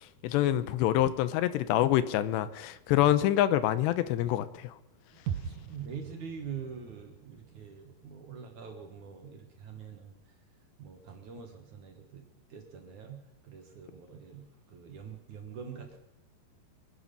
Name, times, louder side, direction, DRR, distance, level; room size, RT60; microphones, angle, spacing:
voice 1, 0.0-4.8, left 13 dB, 85° left, 13 dB, 3.0 m, -26 dB
voice 2, 5.1-10.3 10.8-16.0, right 7 dB, 55° right, 4 dB, 2.4 m, -45 dB
sound 1, 5.3-9.2 9.5-9.6, right 8 dB, 75° right, 1.9 m, -42 dB
24.0 x 11.0 x 5.5 m, 0.92 s
omnidirectional pair, 4.9 m